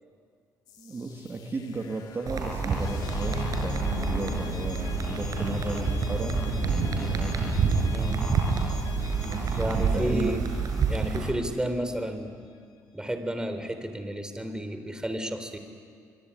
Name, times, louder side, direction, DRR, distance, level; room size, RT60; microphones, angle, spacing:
sound 1, 0.7-11.5, left 7 dB, 75° left, 2.4 m, -38 dB
voice 1, 0.8-6.7 7.0-7.7 9.2-10.3, right 3 dB, 35° right, 2 dB, 2.8 m, -35 dB
sound 2, 2.3-11.3, right 5 dB, 60° right, 5.7 m, -28 dB
voice 2, 7.9-8.3 9.6-10.4 10.9-12.4 12.9-15.6, right 1 dB, 10° right, 8 dB, 3.6 m, -31 dB
24.0 x 24.0 x 9.8 m, 2.1 s
cardioid pair, 80°, 7 cm